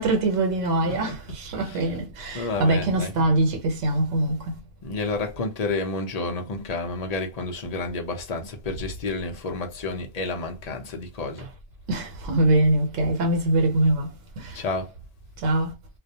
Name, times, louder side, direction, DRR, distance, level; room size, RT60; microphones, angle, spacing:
voice 1, 0.0-4.6 11.4-11.5 11.9-14.7 15.4-15.7, right 2 dB, 85° right, 1.1 m, -23 dB
voice 2, 1.6-1.9 2.3-3.2 4.8-11.5 14.5-14.9, left 3 dB, 40° left, 0.6 m, -30 dB
2.4 x 2.1 x 2.7 m
omnidirectional pair, 1.2 m